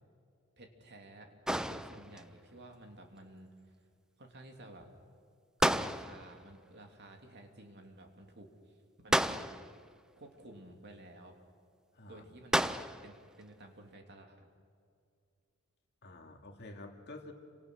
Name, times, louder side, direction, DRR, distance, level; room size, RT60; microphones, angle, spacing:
voice 1, 0.6-1.3 1.7-3.5 4.2-4.9 5.6-8.7 9.0-9.5 10.2-11.4 12.1-14.5, right 1 dB, 50° right, 3 dB, 3.0 m, -53 dB
sound 1, 1.5-2.3 5.6-6.4 9.1-9.9 12.5-13.2, right 1 dB, 5° right, 0.5 m, -32 dB
voice 2, 11.9-12.2 16.0-17.3, left 2 dB, 50° left, 3 dB, 2.6 m, -49 dB
29.0 x 25.5 x 6.4 m, 2.3 s
head